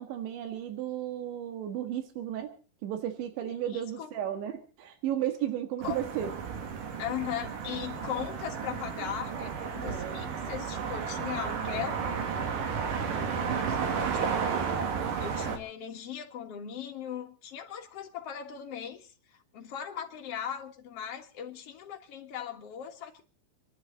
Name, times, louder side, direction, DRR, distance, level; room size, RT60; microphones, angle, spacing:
voice 1, 0.0-2.5 2.8-6.3 9.9-10.2, right 11 dB, 85° right, 6 dB, 4.0 m, -34 dB
voice 2, 3.7-4.1 5.8-6.0 7.0-12.7 13.1-14.3 15.2-19.1 19.5-23.2, left 9 dB, 60° left, 2 dB, 1.6 m, -39 dB
sound 1, 5.8-15.6, right 6 dB, 55° right, 3.1 m, -33 dB
27.5 x 11.5 x 3.9 m, 0.36 s
omnidirectional pair, 5.1 m